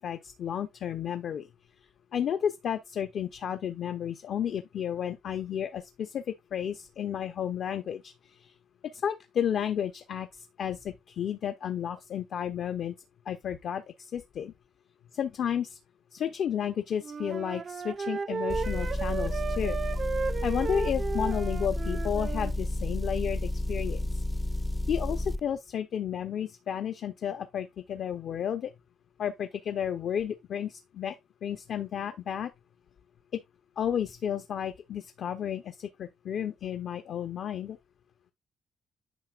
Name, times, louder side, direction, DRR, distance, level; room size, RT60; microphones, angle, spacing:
voice 1, 0.0-1.5 2.1-8.5 9.0-13.0 13.3-14.5 15.1-15.8 16.1-19.8 20.4-24.2 24.9-28.7 29.2-31.2 31.4-32.5 33.3-33.4 33.8-37.8, left 9 dB, 65° left, 0.7 m, -32 dB
Wind instrument woodwind instrument, 17.0-22.5, right 5 dB, 45° right, 0.5 m, -34 dB
Motor vehicle (road) / Engine, 18.5-25.4, left 1 dB, 15° left, 0.4 m, -31 dB
9.2 x 5.6 x 2.4 m
cardioid pair, 90°, 0 cm